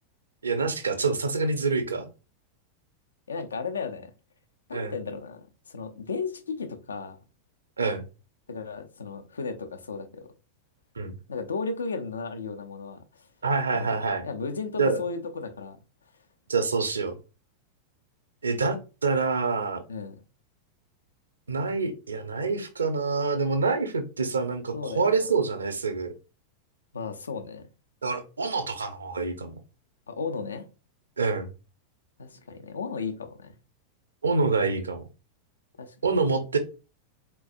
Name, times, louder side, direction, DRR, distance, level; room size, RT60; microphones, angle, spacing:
voice 1, 0.4-2.1 4.7-4.9 7.8-8.1 11.0-11.2 13.4-14.2 14.8-15.0 16.5-17.1 18.4-19.8 21.5-26.1 28.0-29.6 31.2-31.5 34.2-35.0 36.0-36.6, right 4 dB, 75° right, 0.7 m, -26 dB
voice 2, 3.3-4.1 4.7-7.2 8.5-10.3 11.3-13.3 13.7-13.9 14.2-15.8 19.9-20.2 24.7-25.1 26.9-27.7 30.1-30.7 32.2-33.6 35.8-35.9, left 4 dB, 70° left, 0.6 m, -34 dB
4.5 x 4.1 x 2.5 m
figure-of-eight pair, 90°, 0 cm